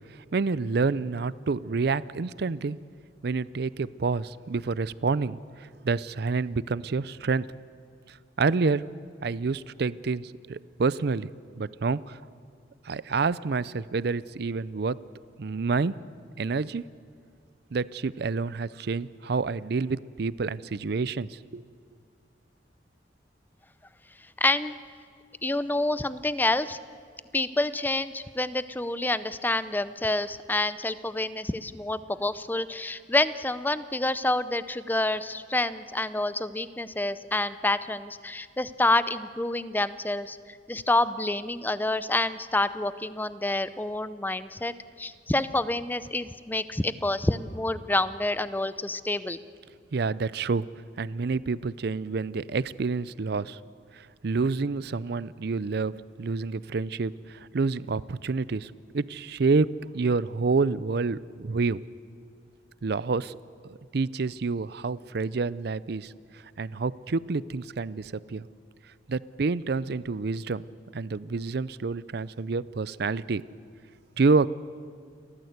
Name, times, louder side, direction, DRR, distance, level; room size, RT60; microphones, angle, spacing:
voice 1, 0.3-2.8 3.2-5.4 5.8-7.5 8.4-8.8 9.2-11.3 11.6-12.2 12.9-15.0 15.4-15.9 16.4-16.8 17.7-21.6 49.9-50.7 51.0-53.6 54.2-61.8 62.8-63.4 63.6-66.1 66.6-68.5 69.1-70.6 70.9-73.4 74.2-74.5, right 4 dB, 60° right, 19 dB, 0.5 m, -28 dB
voice 2, 24.4-24.8 25.4-26.8 27.3-40.4 40.7-49.4, left 2 dB, 10° left, 14 dB, 0.6 m, -28 dB
29.5 x 14.0 x 8.1 m, 2.2 s
head